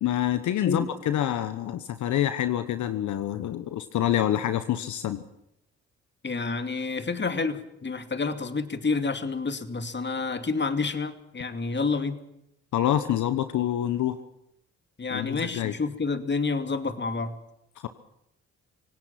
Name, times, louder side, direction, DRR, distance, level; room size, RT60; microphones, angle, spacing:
voice 1, 0.0-5.2 12.7-14.2 15.1-15.7 17.8-17.9, left 11 dB, 75° left, 11 dB, 1.1 m, -26 dB
voice 2, 6.2-12.2 15.0-17.4, left 4 dB, 35° left, 9 dB, 2.6 m, -29 dB
26.0 x 18.0 x 5.9 m, 0.80 s
supercardioid pair, 55°, 30 cm